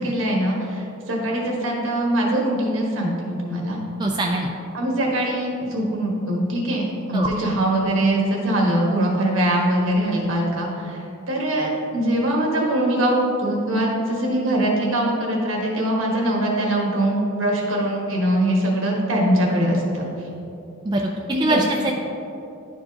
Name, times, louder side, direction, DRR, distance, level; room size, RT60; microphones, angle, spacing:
voice 1, 0.0-3.8 4.7-11.0 11.3-20.1 21.3-21.6, right 1 dB, 65° right, -2 dB, 1.4 m, -22 dB
voice 2, 4.0-4.5 7.1-7.3 20.8-21.1 21.4-21.9, right 1 dB, 20° right, 0 dB, 0.4 m, -22 dB
11.0 x 4.6 x 2.8 m, 2.8 s
head